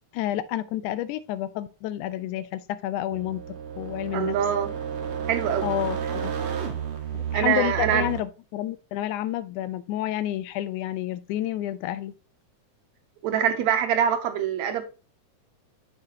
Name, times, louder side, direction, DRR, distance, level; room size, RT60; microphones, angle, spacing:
voice 1, 0.1-3.4 3.8-4.4 5.6-6.3 7.1-12.1, left 13 dB, 80° left, 1.9 m, -30 dB
sound 1, 3.1-8.2, right 8 dB, 55° right, 1.7 m, -32 dB
voice 2, 4.1-4.7 5.3-5.7 7.3-8.1 13.2-14.8, right 9 dB, 75° right, 1.9 m, -24 dB
7.4 x 6.6 x 2.8 m
omnidirectional pair, 3.5 m